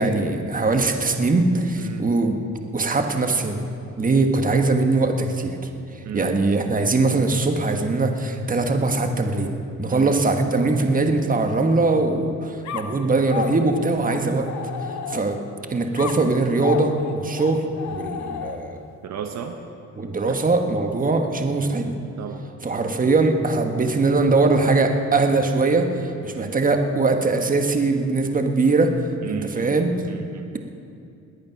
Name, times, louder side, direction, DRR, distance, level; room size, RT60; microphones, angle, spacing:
voice 1, 0.0-2.4 2.7-3.6 4.0-5.6 6.1-14.5 15.1-15.4 15.7-18.8 20.0-21.9 22.6-28.9 29.2-29.9, right 3 dB, 25° right, 5 dB, 1.5 m, -21 dB
voice 2, 1.8-2.1 6.0-6.4 9.9-10.2 19.0-19.6 20.3-20.4 22.2-22.4 22.7-22.9 26.3-26.5 29.2-29.8 30.1-30.6, right 8 dB, 65° right, 6 dB, 1.0 m, -34 dB
sound 1, 12.6-15.5 16.0-18.8, left 8 dB, 65° left, 1.0 m, -33 dB
21.0 x 8.7 x 6.0 m, 2.5 s
cardioid pair, 90°, 30 cm